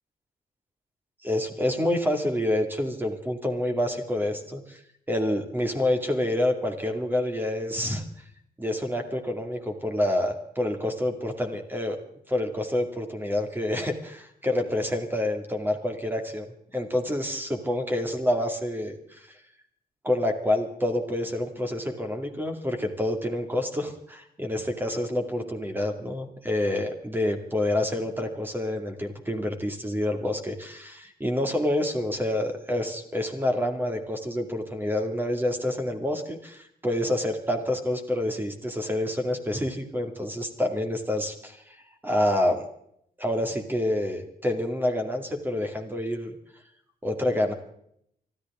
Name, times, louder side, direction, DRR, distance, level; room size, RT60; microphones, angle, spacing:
voice 1, 1.2-4.8 5.1-8.0 8.6-12.0 12.3-19.4 20.0-41.8 42.0-42.6 43.2-46.3 47.0-47.5, left 1 dB, 15° right, 4 dB, 2.3 m, -28 dB
24.5 x 14.0 x 3.7 m, 0.69 s
cardioid pair, 130°, 16 cm